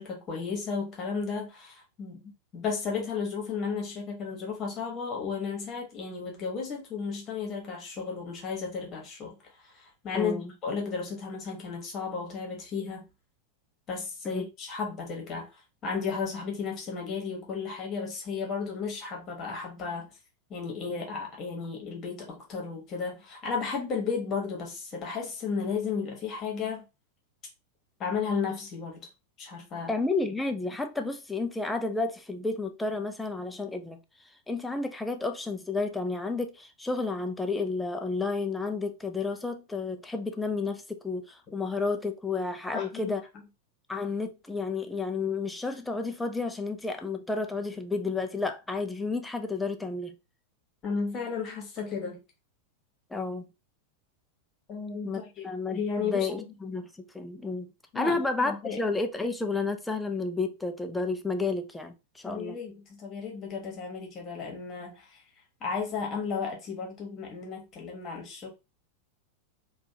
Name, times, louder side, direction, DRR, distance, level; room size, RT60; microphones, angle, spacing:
voice 1, 0.0-9.3 9.6-13.0 13.9-20.1 20.5-26.8 28.0-29.1 29.4-29.9 42.7-43.1 50.8-52.2 54.7-55.4 55.7-56.3 57.9-58.8 62.2-65.2 65.6-68.5, left 5 dB, 30° left, 1.3 m, -34 dB
voice 2, 10.1-10.5 14.3-14.5 29.9-34.0 34.5-43.2 43.9-50.1 53.1-53.5 55.0-56.9 57.1-62.6, left 3 dB, 5° left, 0.4 m, -31 dB
3.3 x 2.3 x 2.7 m
figure-of-eight pair, 90°, 0 cm